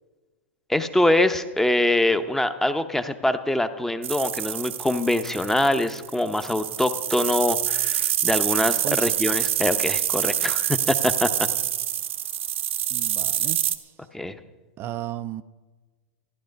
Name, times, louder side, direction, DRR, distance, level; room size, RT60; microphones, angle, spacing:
voice 1, 0.7-11.5 14.1-14.4, left 1 dB, 5° left, 10 dB, 0.8 m, -24 dB
sound 1, 4.0-13.8, right 11 dB, 70° right, 0.8 m, -26 dB
voice 2, 8.8-9.1 12.9-13.9 14.8-15.4, right 13 dB, 35° right, 10 dB, 0.5 m, -34 dB
14.5 x 10.5 x 5.3 m, 1.3 s
hypercardioid pair, 105°, 7 cm